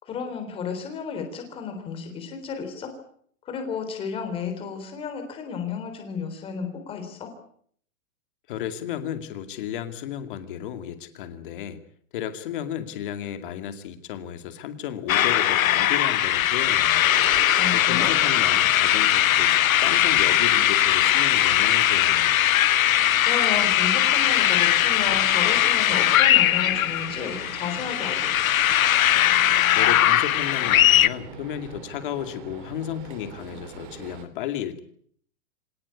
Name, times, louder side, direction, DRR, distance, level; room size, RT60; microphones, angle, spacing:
voice 1, 0.0-2.9 3.5-7.3 17.6-18.1 23.2-28.4, left 6 dB, 15° left, 6 dB, 3.7 m, -32 dB
voice 2, 8.5-11.8 12.1-17.1 17.7-22.4 29.8-34.8, left 10 dB, 40° left, 9 dB, 2.5 m, -33 dB
sound 1, 15.1-31.1, left 12 dB, 75° left, 1.1 m, -20 dB
sound 2, 17.1-34.2, right 7 dB, 35° right, 3.0 m, -42 dB
25.5 x 18.5 x 8.4 m, 0.62 s
supercardioid pair, 180°, 42 cm